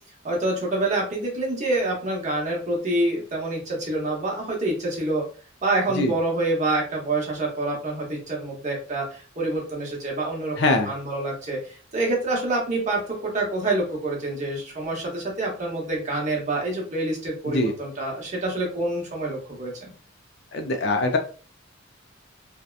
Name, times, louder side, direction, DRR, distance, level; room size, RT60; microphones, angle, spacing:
voice 1, 0.2-5.2 5.6-19.9, right 2 dB, 35° right, -2 dB, 0.9 m, -27 dB
voice 2, 10.6-10.9 17.5-17.7 20.5-21.2, left 2 dB, 60° left, 5 dB, 0.4 m, -22 dB
2.7 x 2.1 x 2.4 m, 0.40 s
head